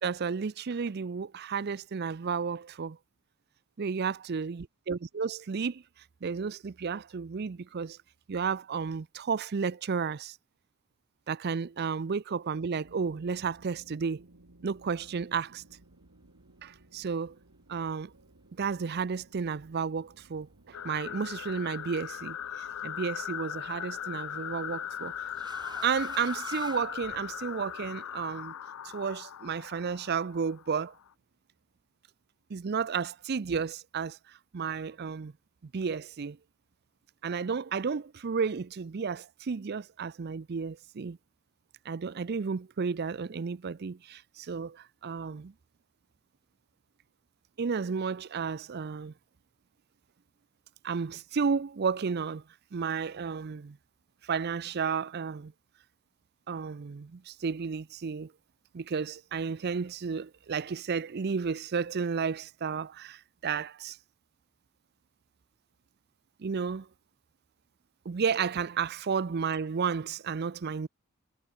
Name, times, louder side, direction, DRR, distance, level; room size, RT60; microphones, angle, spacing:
voice 1, 0.0-3.0 3.8-5.8 6.2-8.0 8.3-10.4 11.3-14.2 14.6-15.6 16.6-17.4 17.7-18.1 18.6-22.4 22.8-25.1 25.8-28.5 28.9-30.9 32.5-35.3 35.6-36.4 37.2-41.2 41.9-45.5 47.6-49.1 50.8-52.4 52.7-53.8 54.2-55.5 56.5-58.3 58.7-64.0 66.4-66.9 68.1-70.9, right 5 dB, 50° right, 0.5 m, -32 dB
sound 1, 12.8-26.0, right 2 dB, 85° right, 2.0 m, -59 dB
sound 2, 20.7-31.1, left 10 dB, 75° left, 0.4 m, -39 dB
sound 3, 21.8-22.2 23.6-27.6, right 4 dB, 20° right, 2.0 m, -49 dB
head